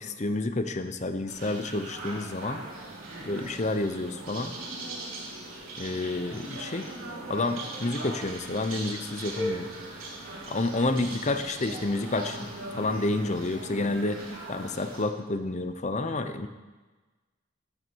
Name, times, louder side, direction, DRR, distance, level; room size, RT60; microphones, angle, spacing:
voice 1, 0.0-2.6 3.2-4.5 5.8-6.9 7.3-9.7 10.5-14.2 14.5-16.5, left 2 dB, 35° left, 8 dB, 0.8 m, -29 dB
sound 1, 1.3-15.0, right 1 dB, 80° right, 3.5 m, -39 dB
13.5 x 7.3 x 6.3 m, 1.3 s
head